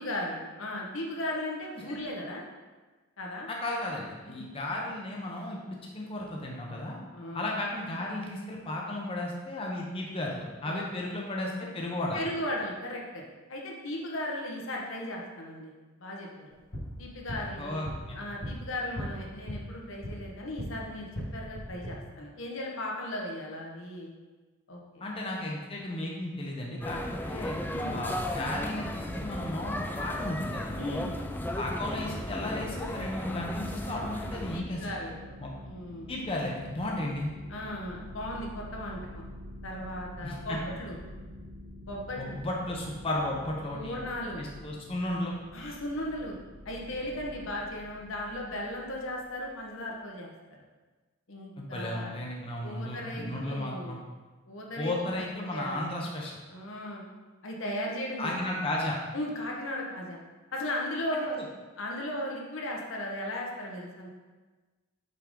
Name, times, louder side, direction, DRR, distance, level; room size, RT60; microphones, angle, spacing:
voice 1, 0.0-2.4 3.2-3.5 4.3-4.4 7.1-7.5 10.6-11.3 12.1-13.2 13.5-15.7 16.0-16.6 17.0-17.8 18.1-24.1 24.7-25.1 27.7-28.0 30.8-31.2 34.5-35.2 35.6-36.1 37.5-39.2 39.6-41.0 41.8-42.4 43.7-44.4 45.5-46.4 46.6-50.3 51.3-52.1 52.6-54.0 54.5-55.2 55.5-55.9 56.2-57.0 57.4-58.3 59.1-60.2 60.5-61.4 61.8-64.1, left 1 dB, 75° left, -1 dB, 1.1 m, -36 dB
voice 2, 3.5-7.0 7.3-12.2 17.6-18.2 25.0-27.0 27.2-27.6 27.9-30.8 31.5-35.0 35.4-35.5 36.1-37.3 40.2-40.6 42.2-44.0 44.4-45.3 51.6-54.0 54.8-56.3 58.2-59.0 61.4-61.5, left 1 dB, 25° left, -2 dB, 0.7 m, -34 dB
sound 1, 16.5-20.7 21.1-21.9, equal, 55° left, 1.5 m, -39 dB
sound 2, 26.8-34.6, left 1 dB, 10° left, 0.3 m, -35 dB
sound 3, 33.2-49.4, left 1 dB, 70° right, 0.8 m, -47 dB
5.8 x 4.9 x 3.7 m, 1.3 s
head